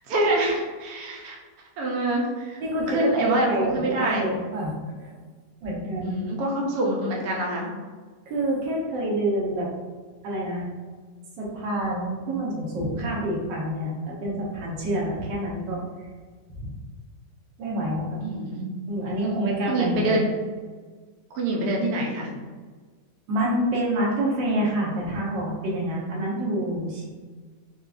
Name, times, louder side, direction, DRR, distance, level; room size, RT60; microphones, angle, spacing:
voice 1, 0.1-1.4 1.8-4.2 6.0-7.7 18.2-18.7 19.7-20.2 21.3-22.3, right 1 dB, 70° right, -2 dB, 1.2 m, -25 dB
voice 2, 2.6-5.1 5.6-6.2 8.3-9.7 10.2-10.7 11.4-15.8 16.5-16.7 17.6-18.2 18.9-20.2 23.3-27.1, right 1 dB, 90° right, -4 dB, 1.6 m, -27 dB
4.5 x 2.3 x 2.4 m, 1.5 s
omnidirectional pair, 1.9 m